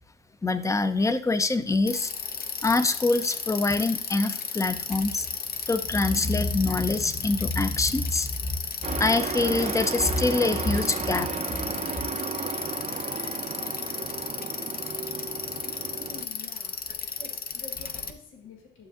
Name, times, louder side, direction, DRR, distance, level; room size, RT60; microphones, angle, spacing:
voice 1, 0.4-2.1 2.6-5.3 5.7-8.5 9.0-11.3, left 3 dB, 15° left, 12 dB, 0.5 m, -25 dB
Bicycle, 1.9-18.1, left 6 dB, 50° left, 0.8 m, -34 dB
Truck, 8.8-16.3, right 6 dB, 35° right, 0.5 m, -34 dB
voice 2, 16.1-18.9, left 3 dB, 85° left, 2 dB, 1.3 m, -48 dB
11.5 x 7.2 x 2.5 m, 0.65 s
cardioid pair, 90°, 20 cm